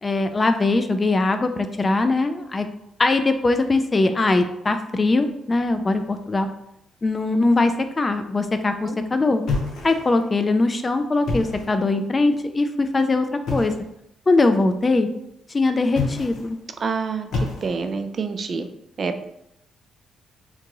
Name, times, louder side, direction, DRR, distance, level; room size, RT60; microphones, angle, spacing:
voice 1, 0.0-2.7 3.0-6.5 7.0-9.4 9.8-13.7 14.3-15.1 15.5-16.6, left 2 dB, 25° left, 8 dB, 0.4 m, -21 dB
sound 1, 9.5-10.3 11.1-11.8 13.5-13.9 15.9-16.6 17.3-18.0, left 3 dB, 75° left, 0.8 m, -28 dB
voice 2, 16.8-17.3 17.6-18.7 19.0-19.2, right 5 dB, 45° right, 7 dB, 0.3 m, -27 dB
3.7 x 2.3 x 2.9 m, 0.79 s
cardioid pair, 90°, 0 cm